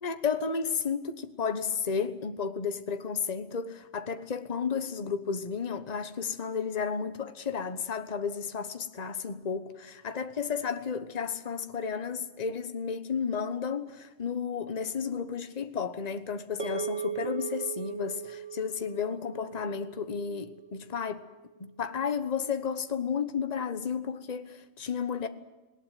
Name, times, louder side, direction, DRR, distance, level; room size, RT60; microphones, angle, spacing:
voice 1, 0.0-21.3 21.6-25.3, left 6 dB, 35° left, 1.2 m, -32 dB
sound 1, 16.6-21.1, right 6 dB, 55° right, 3.7 m, -38 dB
19.5 x 18.0 x 9.3 m
omnidirectional pair, 1.3 m